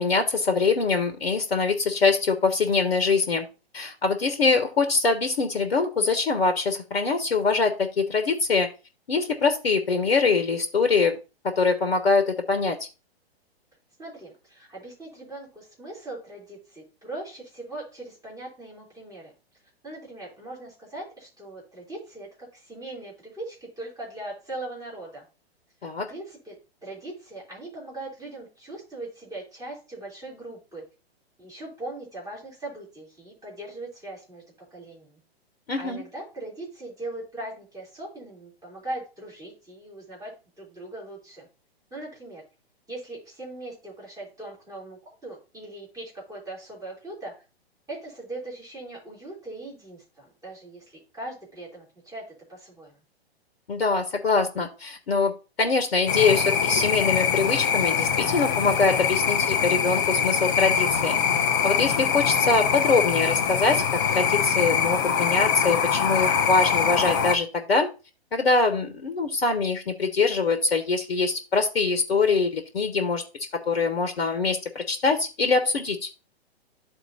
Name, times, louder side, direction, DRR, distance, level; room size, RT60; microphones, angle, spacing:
voice 1, 0.0-3.4 3.7-8.7 9.1-11.2 11.4-12.8 25.8-26.1 35.7-36.0 53.7-61.2 61.6-67.9 68.3-73.2 73.5-76.1, left 4 dB, 65° left, 8 dB, 1.0 m, -23 dB
voice 2, 14.0-19.3 19.8-25.2 25.8-26.6 26.8-30.8 31.4-34.4 34.7-35.2 35.8-41.5 41.9-42.4 42.9-47.3 47.9-50.8 51.1-52.9, right 2 dB, 10° right, -6 dB, 3.5 m, -40 dB
sound 1, 56.1-67.4, left 7 dB, 20° left, 0.3 m, -23 dB
12.5 x 4.2 x 2.8 m, 0.30 s
figure-of-eight pair, 115°, 31 cm